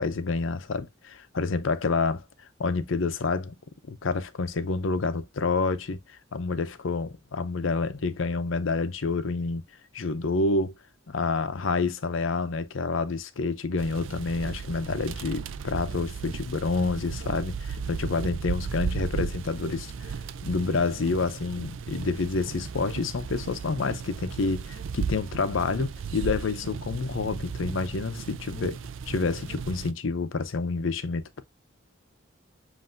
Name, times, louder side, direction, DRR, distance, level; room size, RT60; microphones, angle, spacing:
voice 1, 0.0-2.2 2.6-3.6 3.9-6.0 6.3-9.6 9.9-10.7 11.1-20.1 20.4-28.8 29.1-31.4, left 3 dB, 75° left, 0.6 m, -28 dB
sound 1, 13.8-29.9, right 6 dB, 75° right, 0.4 m, -35 dB
7.6 x 2.6 x 2.5 m
head